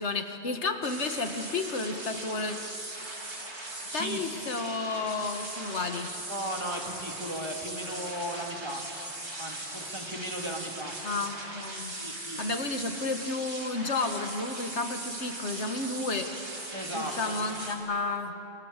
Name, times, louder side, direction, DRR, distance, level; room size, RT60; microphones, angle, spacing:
voice 1, 0.0-2.6 3.9-6.1 11.0-12.0 12.4-16.3 16.9-18.4, left 3 dB, 80° left, 6 dB, 1.9 m, -32 dB
sound 1, 0.8-17.7, right 2 dB, 75° right, 3.5 m, -39 dB
voice 2, 3.9-4.2 6.3-8.8 9.4-11.0 12.0-12.4 16.7-17.4, right 1 dB, 25° right, 1 dB, 2.6 m, -36 dB
28.0 x 26.0 x 6.7 m, 3.0 s
omnidirectional pair, 1.2 m